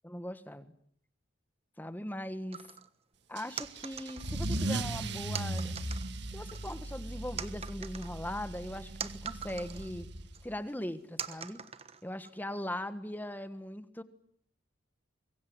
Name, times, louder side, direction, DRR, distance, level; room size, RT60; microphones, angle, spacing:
voice 1, 0.0-0.7 1.8-2.6 3.3-5.7 6.3-10.1 10.4-11.6 12.0-14.0, left 1 dB, 10° left, 12 dB, 1.4 m, -40 dB
sound 1, 2.5-2.9 3.6-4.7 5.3-6.1 6.5-7.0 7.4-9.9 10.3-10.4 11.2-12.3, right 7 dB, 30° right, 1.4 m, -42 dB
Car / Engine starting / Accelerating revving vroom, 3.4-10.5, right 2 dB, 60° right, 1.7 m, -38 dB
25.5 x 22.5 x 9.4 m, 0.67 s
head